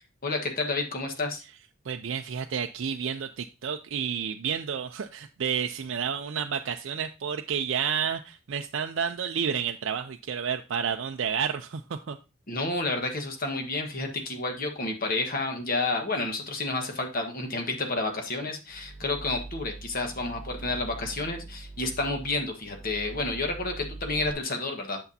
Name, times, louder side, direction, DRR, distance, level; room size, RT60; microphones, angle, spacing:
voice 1, 0.2-1.4 12.5-25.0, left 2 dB, 45° left, 3 dB, 1.4 m, -30 dB
voice 2, 1.8-12.2, right 7 dB, 65° right, 5 dB, 0.4 m, -30 dB
sound 1, 18.7-24.3, right 2 dB, 10° right, 0.5 m, -42 dB
8.1 x 6.8 x 2.7 m, 0.29 s
head